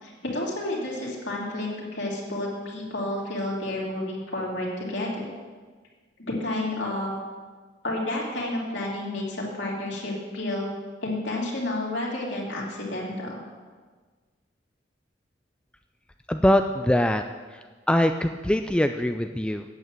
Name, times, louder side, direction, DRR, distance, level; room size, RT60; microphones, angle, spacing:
voice 1, 0.0-5.3 6.2-7.1 7.8-10.7 11.0-13.4, left 1 dB, 70° left, -4 dB, 3.0 m, -30 dB
voice 2, 16.3-17.2 17.5-17.6 17.9-19.6, left 1 dB, 5° left, 7 dB, 0.3 m, -22 dB
9.0 x 8.3 x 7.4 m, 1.4 s
head